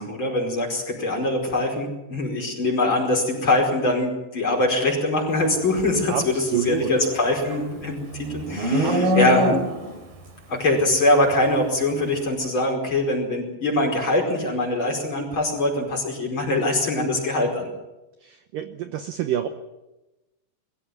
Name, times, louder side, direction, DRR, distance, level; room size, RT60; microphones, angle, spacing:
voice 1, 0.0-9.7 10.5-17.7, left 2 dB, 30° left, 0 dB, 5.3 m, -23 dB
voice 2, 6.1-6.9 8.8-9.4 18.2-19.5, right 11 dB, 75° right, 8 dB, 2.0 m, -28 dB
Livestock farm animals working animals, 6.8-10.0, equal, 60° right, 4.9 m, -24 dB
22.0 x 15.5 x 9.5 m, 1.0 s
omnidirectional pair, 5.0 m